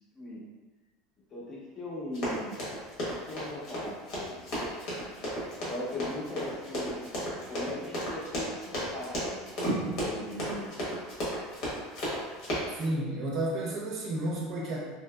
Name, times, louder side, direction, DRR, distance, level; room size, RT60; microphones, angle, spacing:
voice 1, 1.3-2.6 3.1-4.4 5.6-10.8, left 1 dB, 25° left, -6 dB, 0.7 m, -39 dB
Run, 2.1-12.8, equal, 55° left, 1.0 m, -33 dB
voice 2, 12.7-14.9, right 1 dB, 40° right, -3 dB, 0.6 m, -32 dB
2.8 x 2.6 x 2.2 m, 1.3 s
supercardioid pair, 160°, 0 cm